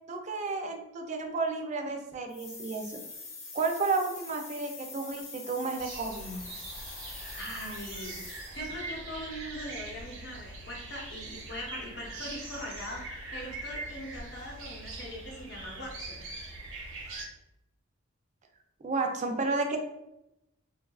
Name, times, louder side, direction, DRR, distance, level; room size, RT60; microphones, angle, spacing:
voice 1, 0.1-3.0 3.5-6.5 18.8-19.8, right 3 dB, 35° right, 4 dB, 0.3 m, -32 dB
sound 1, 2.3-8.7, left 4 dB, 30° left, 0.4 m, -45 dB
sound 2, 5.8-17.2, right 2 dB, 90° right, 0.6 m, -42 dB
voice 2, 7.3-13.0 13.3-16.2, equal, 55° left, -2 dB, 0.7 m, -41 dB
2.6 x 2.3 x 2.3 m, 0.87 s
head